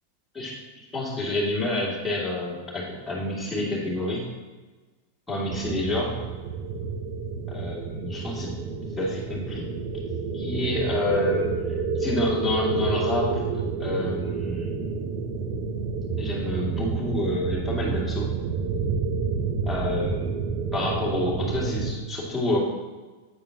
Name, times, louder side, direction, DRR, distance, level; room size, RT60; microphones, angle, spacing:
voice 1, 0.9-4.2 5.3-6.2 7.5-8.5 9.0-9.7 10.3-11.5 11.9-13.4 13.8-14.7 16.2-18.3 19.7-20.3 20.7-22.6, left 1 dB, 10° left, -6 dB, 2.4 m, -28 dB
sound 1, 5.5-21.9, right 5 dB, 35° right, 0.7 m, -29 dB
8.7 x 8.4 x 2.8 m, 1.3 s
figure-of-eight pair, 90°, 0 cm